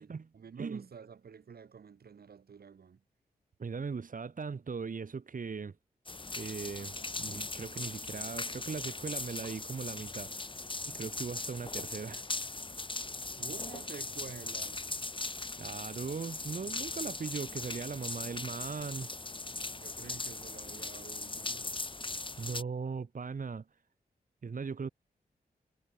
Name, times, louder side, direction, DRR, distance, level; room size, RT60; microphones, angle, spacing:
voice 1, 0.0-3.0 13.4-14.8 19.7-21.7, right 6 dB, 75° right, 6.6 m, -49 dB
voice 2, 3.6-5.8 6.4-10.4 10.9-12.5 15.6-19.1 22.4-23.6 24.4-24.9, right 5 dB, 55° right, 4.0 m, -39 dB
sound 1, 6.1-22.6, left 3 dB, 30° left, 6.3 m, -39 dB
wide cardioid pair, 85°, 16 cm